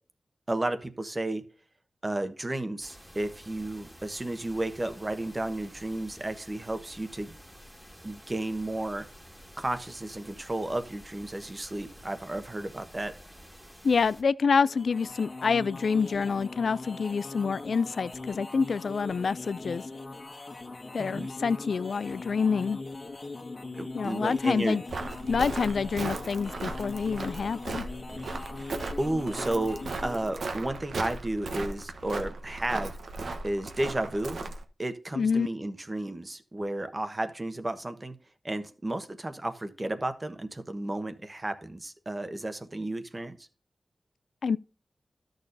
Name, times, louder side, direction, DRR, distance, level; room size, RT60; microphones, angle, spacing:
voice 1, 0.5-1.4 2.0-7.3 8.0-9.1 9.6-13.1 21.0-21.3 23.7-24.8 28.5-28.7 29.0-33.0 33.4-34.5 34.8-38.2 38.4-43.5, right 1 dB, 30° right, 1.2 m, -33 dB
sound 1, 2.8-14.2, equal, 5° right, 1.8 m, -51 dB
voice 2, 13.8-19.8 20.9-22.8 23.9-24.8 25.3-27.9 35.2-35.5 44.4-44.6, left 5 dB, 80° left, 0.3 m, -27 dB
sound 2, 14.6-30.4, left 2 dB, 45° left, 1.6 m, -41 dB
Walk footsteps, 24.9-34.6, right 3 dB, 80° right, 1.0 m, -37 dB
13.0 x 6.6 x 2.7 m
wide cardioid pair, 65°, 0 cm